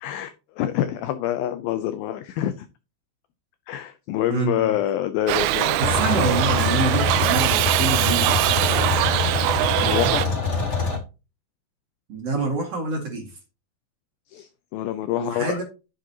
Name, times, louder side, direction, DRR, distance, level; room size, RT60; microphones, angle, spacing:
voice 1, 0.0-2.7 3.7-5.8 9.8-10.2 14.3-15.6, left 12 dB, 90° left, 11 dB, 2.1 m, -26 dB
voice 2, 4.3-4.7 5.8-8.5 12.1-13.3 15.2-15.6, right 3 dB, 45° right, 1 dB, 2.3 m, -26 dB
Shout / Livestock farm animals working animals, 5.3-10.3, right 15 dB, 85° right, 2.8 m, -22 dB
sound 1, 5.8-11.0, left 4 dB, 40° left, 1.0 m, -25 dB
10.5 x 7.9 x 2.8 m, 0.30 s
omnidirectional pair, 5.1 m